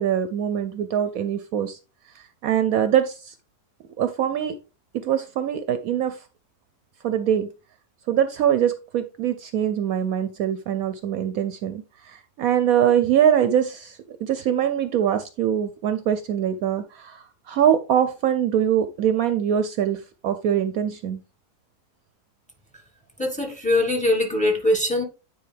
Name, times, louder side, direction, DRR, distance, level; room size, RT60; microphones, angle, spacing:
voice 1, 0.0-1.8 2.1-3.3 4.0-4.6 4.9-6.2 7.0-7.5 8.1-21.2, right 9 dB, 70° right, 0.9 m, -23 dB
voice 2, 23.2-25.0, left 1 dB, 5° left, 1.2 m, -22 dB
9.4 x 4.4 x 3.3 m
omnidirectional pair, 1.7 m